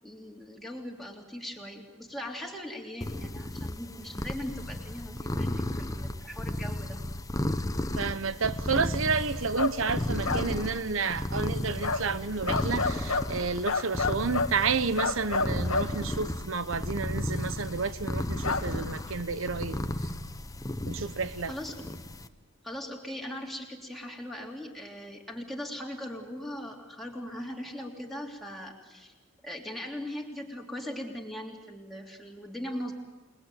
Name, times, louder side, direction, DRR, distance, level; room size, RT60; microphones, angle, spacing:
voice 1, 0.0-7.0 21.5-21.8 22.6-29.1 29.4-32.9, left 1 dB, ahead, 3.2 m, -39 dB
sound 1, 3.0-22.3, left 1 dB, 15° left, 0.9 m, -34 dB
voice 2, 8.0-19.8 20.8-21.5, right 5 dB, 65° right, 1.0 m, -30 dB
sound 2, 9.6-9.8 10.2-10.5 11.8-12.1 12.5-13.3 13.6-14.5 15.0-15.9 18.4-18.6, left 3 dB, 90° left, 1.7 m, -28 dB
29.5 x 20.5 x 9.3 m
head